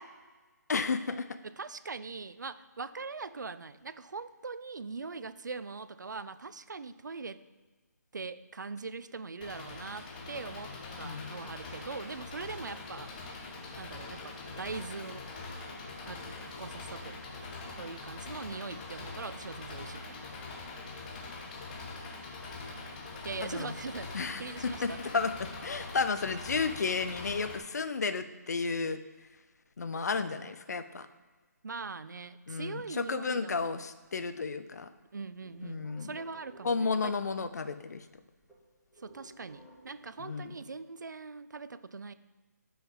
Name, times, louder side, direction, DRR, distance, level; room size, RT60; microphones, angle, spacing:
voice 1, 0.7-1.3 11.0-11.3 23.4-23.7 24.1-29.0 29.8-31.1 32.5-34.9 35.6-36.2 36.6-38.0 40.2-40.5, left 4 dB, 65° left, 11 dB, 0.6 m, -33 dB
voice 2, 1.4-7.4 8.1-13.1 13.8-15.2 16.0-17.3 17.7-20.2 23.2-24.1 24.4-25.0 31.6-33.8 35.1-37.2 39.0-42.1, right 4 dB, 80° right, 14 dB, 0.4 m, -42 dB
Engine, 9.4-27.6, left 3 dB, 25° left, 1.1 m, -43 dB
sound 1, 33.8-34.6 34.9-37.5 37.8-37.9 38.1-40.6, right 1 dB, ahead, 1.6 m, -56 dB
5.6 x 5.5 x 5.0 m, 1.3 s
figure-of-eight pair, 155°, 10 cm